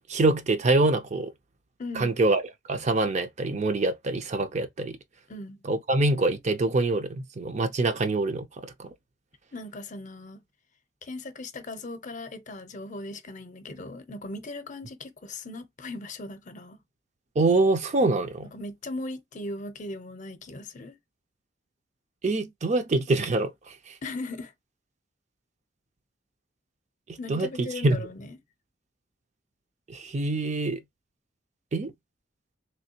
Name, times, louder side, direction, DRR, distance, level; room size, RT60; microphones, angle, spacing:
voice 1, 0.1-1.3 2.0-2.4 2.7-5.0 5.7-8.4 8.8-8.9 17.4-18.5 22.2-23.5 27.3-27.5 27.8-28.0 29.9-30.8 31.7-31.9, right 2 dB, 40° right, 0.5 m, -24 dB
voice 2, 1.8-2.1 5.3-5.6 9.5-10.4 11.0-16.8 18.4-21.0 24.0-24.5 27.2-28.4, left 2 dB, 40° left, 0.6 m, -38 dB
3.2 x 3.1 x 2.7 m
head